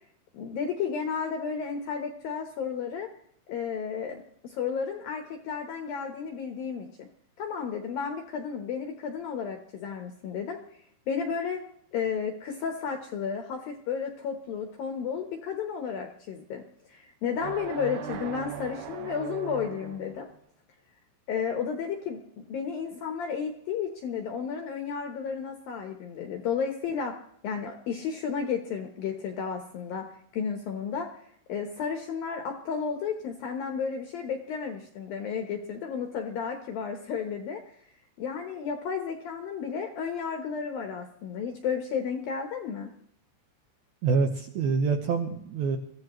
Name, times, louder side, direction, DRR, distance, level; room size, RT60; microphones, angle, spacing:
voice 1, 0.3-3.1 3.5-7.1 7.4-10.6 11.1-11.6 11.9-16.6 16.9-20.3 21.3-27.2 27.4-30.1 30.3-31.1 31.5-37.6 38.2-42.9, left 6 dB, 70° left, 4 dB, 2.3 m, -32 dB
sound 1, 17.4-20.2, right 10 dB, 90° right, 1.7 m, -39 dB
voice 2, 44.0-45.8, right 5 dB, 70° right, 3 dB, 2.4 m, -26 dB
23.5 x 15.0 x 3.2 m, 0.66 s
omnidirectional pair, 5.7 m